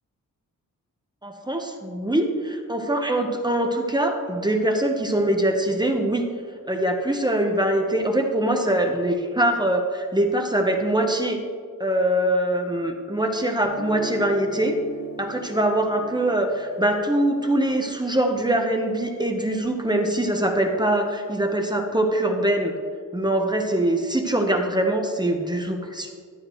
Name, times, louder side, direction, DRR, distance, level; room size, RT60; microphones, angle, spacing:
voice 1, 1.2-2.3 2.7-6.3 6.7-11.4 11.8-14.7 15.2-22.7 23.1-26.1, right 1 dB, 15° right, 3 dB, 1.0 m, -23 dB
Guitar, 13.6-19.6, equal, 50° left, 2.1 m, -40 dB
12.5 x 9.4 x 3.2 m, 2.1 s
wide cardioid pair, 85°, 33 cm